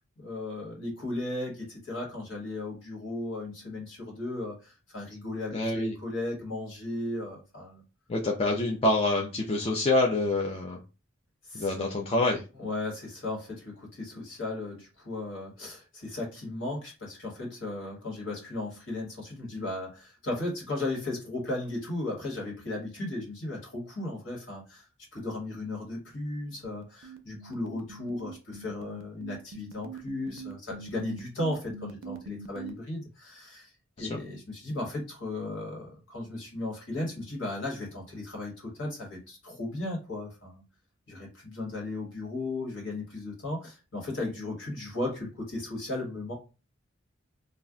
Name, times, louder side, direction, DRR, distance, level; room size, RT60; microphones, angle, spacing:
voice 1, 0.2-7.8 11.5-11.7 12.6-24.8 25.1-33.7 34.0-40.6 41.1-46.3, left 2 dB, 60° left, -1 dB, 1.2 m, -36 dB
voice 2, 5.5-5.9 8.1-10.8 11.5-12.4 34.0-34.1, left 2 dB, 30° left, 0 dB, 0.3 m, -26 dB
sound 1, 26.6-32.7, right 5 dB, 80° right, 0.4 m, -43 dB
2.4 x 2.1 x 3.6 m, 0.31 s
head